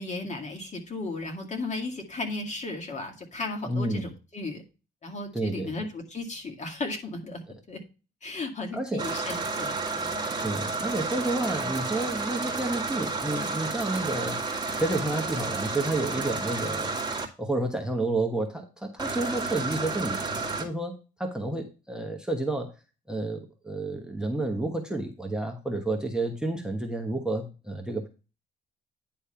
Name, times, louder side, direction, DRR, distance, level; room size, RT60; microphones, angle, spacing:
voice 1, 0.0-4.6 5.0-7.4 7.7-7.8 8.2-10.2, left 2 dB, 35° left, 2 dB, 2.2 m, -35 dB
voice 2, 3.7-4.1 5.3-5.7 8.7-9.1 10.4-14.4 14.7-17.0 17.4-22.7 23.1-28.1, right 2 dB, 5° right, 4 dB, 1.2 m, -30 dB
sound 1, 9.0-17.2 19.0-20.6, right 3 dB, 20° right, 1.8 m, -31 dB
10.0 x 3.4 x 5.6 m, 0.31 s
cardioid pair, 90°, 20 cm